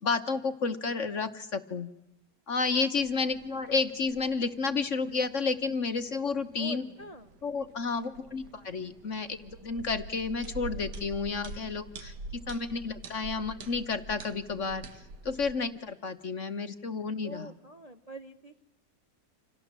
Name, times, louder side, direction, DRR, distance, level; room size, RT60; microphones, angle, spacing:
voice 1, 0.0-1.9 2.5-6.8 7.4-12.1 12.5-14.8 15.2-17.5, left 4 dB, 45° left, 10 dB, 1.4 m, -31 dB
sound 1, 3.0-15.5, right 3 dB, 65° right, 2.0 m, -46 dB
voice 2, 6.6-7.3 17.2-18.6, right 1 dB, 25° right, 7 dB, 0.9 m, -45 dB
29.5 x 27.5 x 7.4 m, 0.91 s
omnidirectional pair, 2.0 m